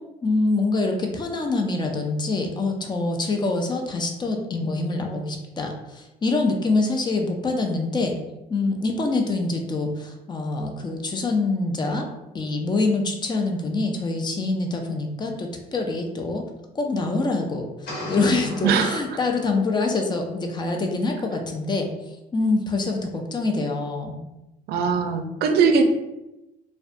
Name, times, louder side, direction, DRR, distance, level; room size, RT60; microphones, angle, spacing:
voice 1, 0.2-8.1 8.5-12.0 12.3-16.4 16.7-21.9 22.3-24.2, left 3 dB, 25° left, 2 dB, 0.4 m, -25 dB
sound 1, 17.9-19.8, equal, 80° left, 1.1 m, -36 dB
voice 2, 18.6-19.2 24.7-25.8, right 6 dB, 75° right, 6 dB, 0.4 m, -21 dB
2.5 x 2.2 x 2.4 m, 0.94 s
cardioid pair, 110°, 17 cm